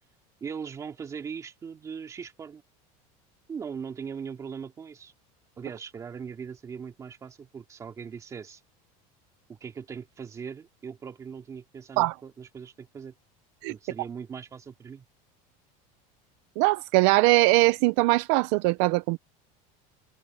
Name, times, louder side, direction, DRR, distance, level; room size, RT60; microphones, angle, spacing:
voice 1, 0.4-2.6 3.5-5.1 5.6-8.6 9.5-13.1 13.7-15.1, right 6 dB, 20° right, 2.4 m, -40 dB
voice 2, 16.6-19.2, right 22 dB, 55° right, 0.6 m, -21 dB
cardioid pair, 175°, 18 cm